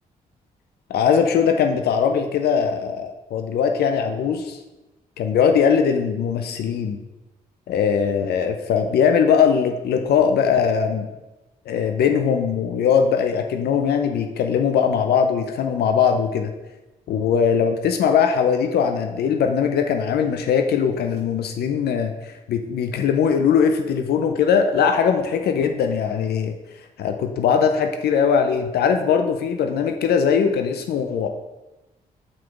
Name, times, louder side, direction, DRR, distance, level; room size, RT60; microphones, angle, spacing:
voice 1, 0.9-4.6 5.2-7.0 7.7-11.1 11.7-16.5 17.1-22.1 22.5-26.5 27.0-31.3, left 7 dB, 75° left, 5 dB, 0.6 m, -20 dB
4.5 x 4.3 x 5.8 m, 1.1 s
supercardioid pair, 55°, 17 cm